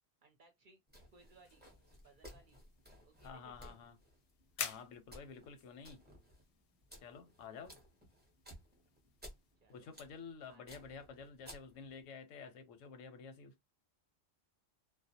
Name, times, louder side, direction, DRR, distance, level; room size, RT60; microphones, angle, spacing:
voice 1, 0.2-0.8 1.1-1.7 2.0-2.6 3.0-3.7 9.6-9.9 10.5-10.9, right 4 dB, 55° right, 0.6 m, -65 dB
sound 1, 0.9-12.1, equal, 10° right, 0.5 m, -58 dB
sound 2, 1.1-9.6, left 7 dB, 65° left, 0.7 m, -51 dB
voice 2, 3.2-4.0 4.6-6.0 7.0-7.8 9.7-13.5, left 5 dB, 90° left, 1.0 m, -51 dB
2.3 x 2.0 x 2.6 m
omnidirectional pair, 1.3 m